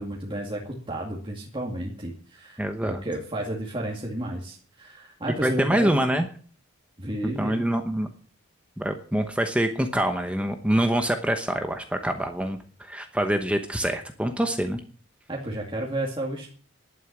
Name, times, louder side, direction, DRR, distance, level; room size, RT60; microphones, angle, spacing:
voice 1, 0.0-5.9 7.0-7.6 15.3-16.5, right 1 dB, 25° right, -2 dB, 2.3 m, -32 dB
voice 2, 2.6-3.0 5.4-6.3 7.4-8.1 8.8-14.8, right 1 dB, 5° right, 6 dB, 0.9 m, -25 dB
11.5 x 9.3 x 8.6 m, 0.43 s
head